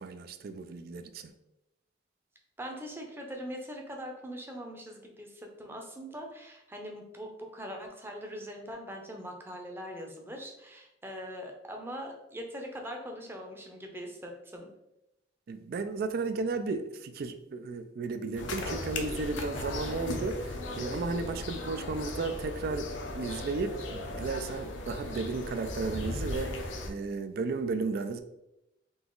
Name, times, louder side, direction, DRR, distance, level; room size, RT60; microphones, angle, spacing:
voice 1, 0.0-1.3 15.5-22.9 23.1-26.6 26.9-28.2, right 4 dB, 55° right, 9 dB, 0.3 m, -34 dB
voice 2, 2.6-14.7, equal, 10° right, 2 dB, 0.6 m, -42 dB
sound 1, 18.4-26.9, left 2 dB, 80° left, 0.7 m, -37 dB
3.9 x 2.9 x 3.8 m, 0.88 s
head